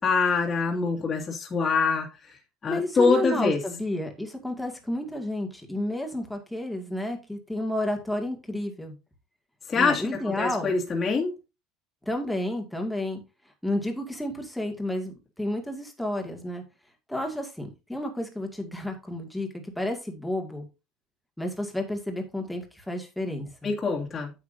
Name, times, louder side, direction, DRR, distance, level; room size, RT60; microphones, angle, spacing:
voice 1, 0.0-2.4 2.6-3.6 9.7-11.3 23.6-24.3, left 4 dB, 20° left, 2.1 m, -25 dB
voice 2, 2.7-8.9 9.8-10.8 12.1-13.2 13.6-16.6 17.1-19.5 19.8-20.7 21.4-23.5, left 1 dB, ahead, 2.1 m, -31 dB
9.5 x 8.3 x 2.7 m
cardioid pair, 155°, 0 cm